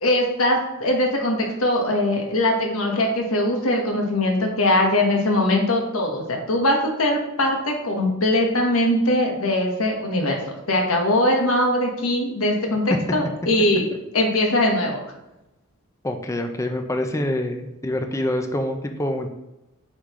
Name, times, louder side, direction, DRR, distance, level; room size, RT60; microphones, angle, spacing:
voice 1, 0.0-10.4 10.7-13.9 14.1-15.0, left 1 dB, 85° left, 1 dB, 1.3 m, -21 dB
voice 2, 16.0-19.3, left 1 dB, 15° left, 5 dB, 0.5 m, -26 dB
9.6 x 3.8 x 3.1 m, 0.92 s
head